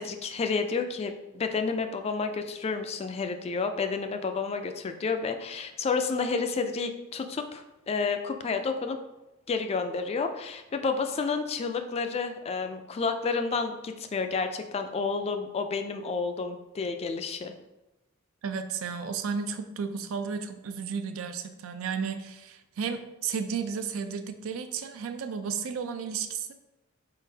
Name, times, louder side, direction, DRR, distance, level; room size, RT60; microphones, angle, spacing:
voice 1, 0.0-9.0 9.5-17.5, left 4 dB, 30° left, 7 dB, 0.3 m, -30 dB
voice 2, 18.4-26.5, right 6 dB, 75° right, 8 dB, 0.4 m, -33 dB
4.4 x 3.8 x 2.7 m, 0.99 s
head